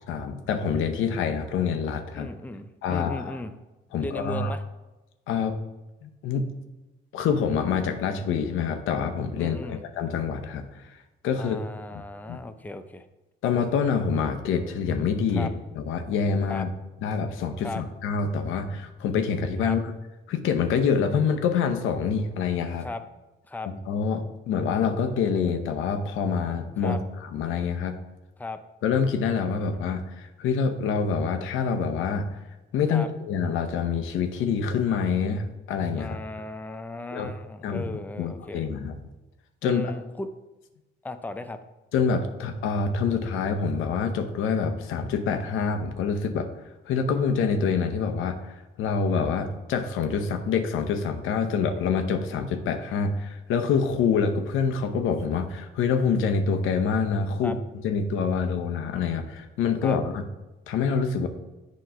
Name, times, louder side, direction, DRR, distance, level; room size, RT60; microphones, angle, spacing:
voice 1, 0.1-2.3 2.8-3.4 3.9-4.5 5.3-5.6 6.0-6.5 7.1-10.6 11.2-11.6 12.3-12.4 13.4-15.5 15.7-16.7 17.0-19.9 20.3-22.9 23.9-27.9 28.8-32.4 32.7-36.2 37.1-37.3 37.6-37.9 38.2-39.0 39.6-39.9 41.9-46.5 46.9-48.4 48.8-57.6 57.8-60.2 60.7-61.3, left 6 dB, 85° left, 6 dB, 0.7 m, -26 dB
voice 2, 2.1-3.5 3.9-4.6 9.4-9.8 11.4-13.1 15.3-15.5 16.5-16.7 17.6-17.8 19.6-19.8 22.8-23.0 23.5-23.7 26.8-27.0 28.4-28.6 32.9-33.1 36.0-38.7 39.6-40.3 41.0-41.6 57.4-57.5 59.8-60.0, left 2 dB, 10° left, 9 dB, 0.5 m, -36 dB
7.8 x 3.1 x 5.6 m, 1.1 s
cardioid pair, 90°, 20 cm